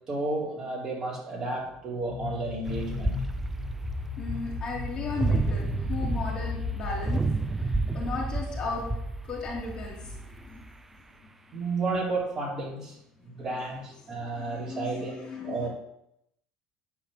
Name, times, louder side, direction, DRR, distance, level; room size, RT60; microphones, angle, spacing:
voice 1, 0.1-3.2 11.5-13.0 13.2-15.7, right 3 dB, 30° right, -4 dB, 4.3 m, -32 dB
sound 1, 2.1-7.6, left 12 dB, 70° left, 1.0 m, -38 dB
sound 2, 2.6-10.8, right 3 dB, 10° right, 0.6 m, -31 dB
voice 2, 4.2-7.3 7.6-8.9 9.2-10.6 10.9-11.0 14.1-15.7, left 4 dB, 35° left, -2 dB, 2.9 m, -36 dB
9.9 x 4.9 x 6.8 m, 0.79 s
cardioid pair, 130°, 2 cm